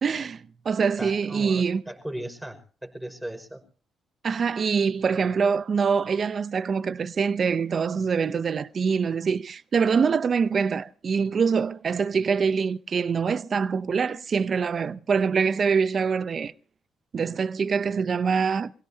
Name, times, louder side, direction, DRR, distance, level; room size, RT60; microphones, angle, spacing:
voice 1, 0.0-1.8 4.2-16.5 17.1-18.7, right 6 dB, 45° right, 0.7 m, -24 dB
voice 2, 1.0-3.6, right 1 dB, 5° right, 5.6 m, -37 dB
26.0 x 17.0 x 2.8 m
cardioid pair, 90°, 0 cm